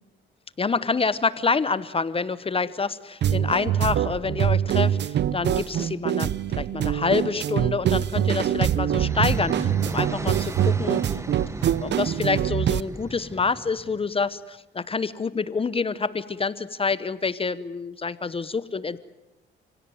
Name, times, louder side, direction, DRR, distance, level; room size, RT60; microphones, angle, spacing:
voice 1, 0.6-11.0 11.4-19.0, left 4 dB, 30° left, 16 dB, 0.9 m, -27 dB
sound 1, 3.2-12.8, right 10 dB, 60° right, 0.8 m, -24 dB
sound 2, 8.2-14.1, right 2 dB, 15° right, 1.3 m, -36 dB
30.0 x 17.0 x 9.4 m, 1.0 s
cardioid pair, 90°, 20 cm